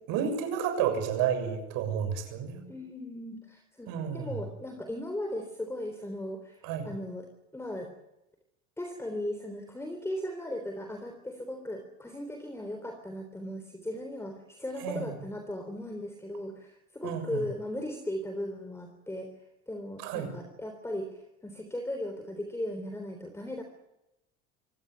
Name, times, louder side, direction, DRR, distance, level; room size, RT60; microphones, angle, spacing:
voice 1, 0.1-2.6 3.9-4.4 6.6-6.9 14.8-15.1 17.0-17.4 20.0-20.3, right 8 dB, 70° right, 7 dB, 7.2 m, -31 dB
voice 2, 2.7-6.6 6.8-7.3 7.5-7.9 8.8-19.3 19.7-23.6, left 1 dB, 10° left, 5 dB, 3.6 m, -37 dB
25.0 x 17.0 x 9.4 m, 0.91 s
supercardioid pair, 105°, 34 cm